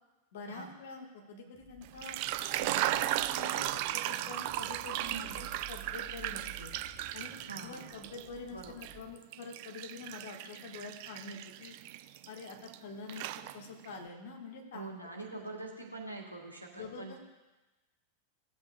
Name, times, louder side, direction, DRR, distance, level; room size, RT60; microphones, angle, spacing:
voice 1, 0.3-2.2 2.6-6.7 7.1-11.7 12.3-14.9 15.3-15.5 16.7-17.2, left 3 dB, 55° left, 1 dB, 1.6 m, -46 dB
sound 1, 1.5-9.2, right 5 dB, 5° right, 3.4 m, -54 dB
sound 2, 1.8-8.3 8.6-12.8 13.1-13.9, right 14 dB, 45° right, 0.3 m, -36 dB
voice 2, 5.0-5.5 7.5-8.1 8.5-8.9 14.7-17.2, right 3 dB, 90° right, -1 dB, 1.6 m, -44 dB
16.5 x 7.7 x 2.4 m, 1.1 s
figure-of-eight pair, 90°, 0 cm